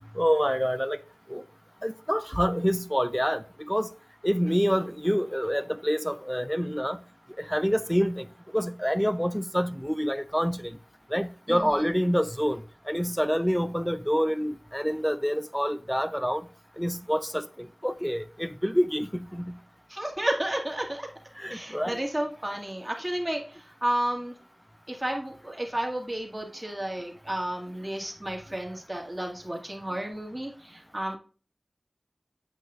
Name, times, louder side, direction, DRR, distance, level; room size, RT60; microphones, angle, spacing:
voice 1, 0.2-1.0 1.3-1.4 1.8-3.9 4.2-7.0 7.4-8.3 8.5-10.8 11.1-16.4 16.8-19.5 21.4-22.0, equal, ahead, 0.6 m, -27 dB
voice 2, 11.5-11.9 19.9-21.1 21.5-24.3 24.9-31.2, right 1 dB, 20° right, 2.2 m, -32 dB
8.9 x 8.7 x 2.6 m
wide cardioid pair, 40°, 0 cm